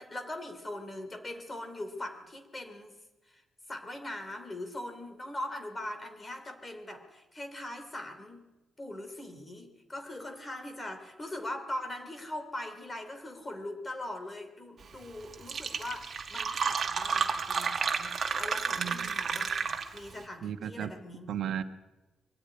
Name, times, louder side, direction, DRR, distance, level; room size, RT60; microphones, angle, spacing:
voice 1, 0.0-2.9 3.3-3.4 3.7-8.5 8.8-21.3, left 1 dB, 15° left, 6 dB, 3.0 m, -41 dB
Fill (with liquid), 15.0-15.1 15.3-20.1, right 6 dB, 40° right, 1.7 m, -31 dB
voice 2, 18.7-19.1 20.4-20.9 21.3-21.6, right 9 dB, 75° right, 8 dB, 1.2 m, -35 dB
23.5 x 13.5 x 9.7 m, 1.1 s
wide cardioid pair, 170°, 0 cm